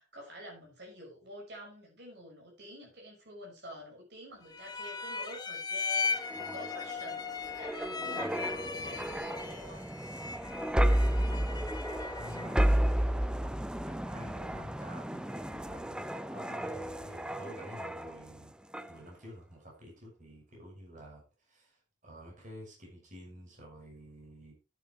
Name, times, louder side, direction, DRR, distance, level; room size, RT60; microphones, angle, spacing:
voice 1, 0.0-9.9, equal, 60° right, -1 dB, 5.9 m, -49 dB
sound 1, 4.5-12.6, left 5 dB, 20° left, 1.4 m, -38 dB
sound 2, 6.0-18.4 18.7-19.0, right 1 dB, 5° right, 0.6 m, -33 dB
voice 2, 12.2-13.5 13.9-18.5 18.9-24.5, equal, 45° right, -1 dB, 6.1 m, -50 dB
10.0 x 9.2 x 4.6 m, 0.30 s
head